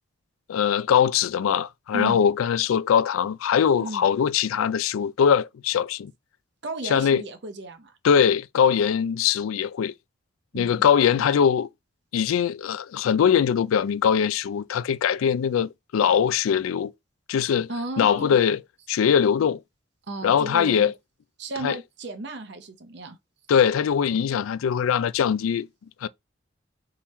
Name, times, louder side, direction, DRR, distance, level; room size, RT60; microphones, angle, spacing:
voice 1, 0.5-6.1 6.8-7.2 8.0-9.9 10.5-11.7 12.1-16.9 17.3-17.7 18.0-18.6 18.9-19.6 20.2-20.9 21.6-21.8 23.5-25.7 26.0-26.1, left 8 dB, 85° left, 0.3 m, -21 dB
voice 2, 6.6-7.9 10.5-10.8 17.7-18.4 20.1-20.9 21.4-23.2, right 2 dB, 55° right, 0.7 m, -34 dB
3.7 x 3.0 x 4.1 m
head